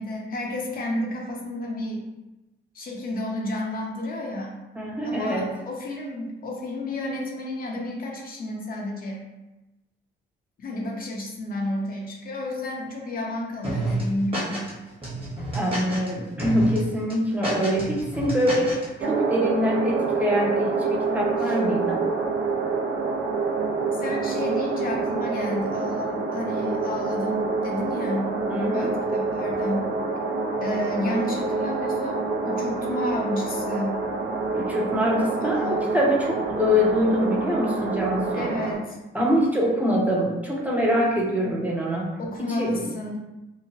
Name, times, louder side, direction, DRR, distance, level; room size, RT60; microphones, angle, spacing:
voice 1, 0.0-2.0 2.7-4.6 5.0-9.2 10.6-14.6 21.4-21.6 23.9-28.3 28.7-29.9 30.6-34.0 35.4-35.9 38.3-39.0 42.2-43.2, left 1 dB, 45° left, -1 dB, 0.6 m, -31 dB
voice 2, 4.8-5.5 15.5-22.0 28.5-28.9 34.5-38.5 39.1-42.1 42.6-42.8, equal, 5° right, -4 dB, 0.6 m, -24 dB
sound 1, 13.6-14.7 15.0-16.1 16.4-16.8 17.1-18.9, right 2 dB, 25° right, 1.0 m, -29 dB
sound 2, 19.0-38.7, right 4 dB, 70° right, 0.5 m, -27 dB
2.8 x 2.1 x 2.7 m, 1.0 s
cardioid pair, 90°, 20 cm